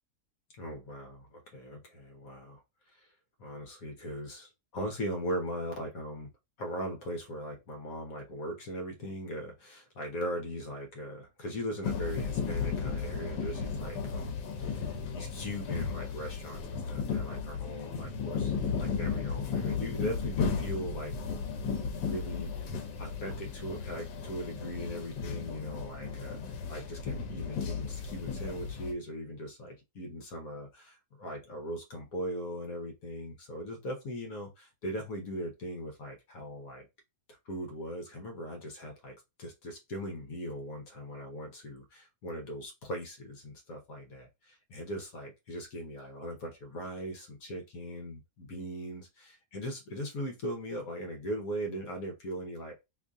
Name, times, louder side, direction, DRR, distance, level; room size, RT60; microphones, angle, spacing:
voice 1, 0.6-2.6 2.9-3.1 3.4-6.3 6.6-18.5 18.8-21.1 21.9-22.7 23.0-26.4 26.7-36.9 37.4-52.8, equal, 60° left, 1.2 m, -39 dB
sound 1, 11.8-28.9, left 5 dB, 90° left, 1.3 m, -35 dB
3.1 x 2.6 x 3.4 m
omnidirectional pair, 1.8 m